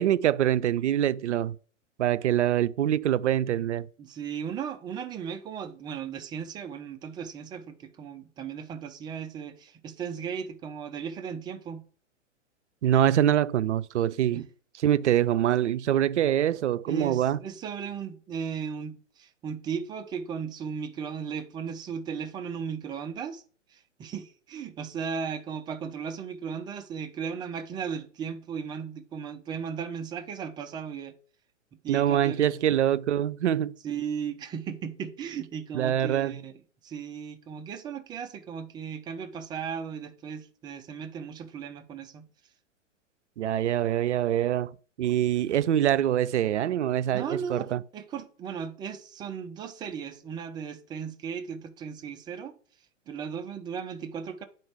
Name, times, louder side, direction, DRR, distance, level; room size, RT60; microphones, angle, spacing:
voice 1, 0.0-1.6 2.0-3.9 12.8-14.4 14.8-17.4 31.9-33.8 35.7-36.4 43.4-44.7 45.0-47.8, right 11 dB, 65° right, 0.5 m, -24 dB
voice 2, 4.0-11.8 14.3-14.4 16.9-23.4 23.7-31.1 31.8-32.5 33.8-36.5 36.8-42.3 47.1-52.5 53.1-54.4, right 7 dB, 10° right, 0.5 m, -36 dB
9.5 x 4.5 x 4.8 m
figure-of-eight pair, 110°, 38 cm